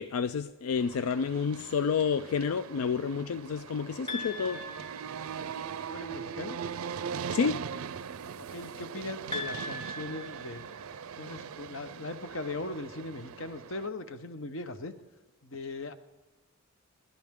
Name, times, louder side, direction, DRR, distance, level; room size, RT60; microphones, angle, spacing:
voice 1, 0.0-4.6 7.3-7.6, left 6 dB, 90° left, 13 dB, 0.4 m, -29 dB
sound 1, 0.8-13.9, right 7 dB, 85° right, 0.5 m, -40 dB
sound 2, 4.1-5.7 9.3-11.3, left 1 dB, 25° left, 1.8 m, -40 dB
voice 2, 5.9-6.6 8.4-10.6 11.2-14.9 15.4-15.9, left 2 dB, 65° left, 10 dB, 0.9 m, -39 dB
28.0 x 12.0 x 3.7 m, 1.2 s
head